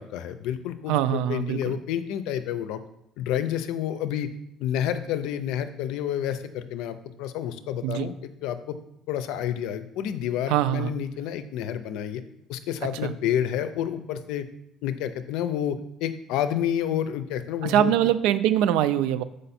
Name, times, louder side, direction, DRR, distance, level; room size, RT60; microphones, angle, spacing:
voice 1, 0.0-2.8 3.2-4.3 4.6-8.7 9.1-12.2 12.5-14.5 14.8-17.9, left 10 dB, 80° left, 11 dB, 0.5 m, -29 dB
voice 2, 0.9-1.8 7.8-8.1 10.5-10.9 13.0-13.1 17.6-19.2, right 11 dB, 90° right, 13 dB, 0.4 m, -23 dB
6.7 x 5.1 x 4.2 m, 0.81 s
cardioid pair, 160°, 0 cm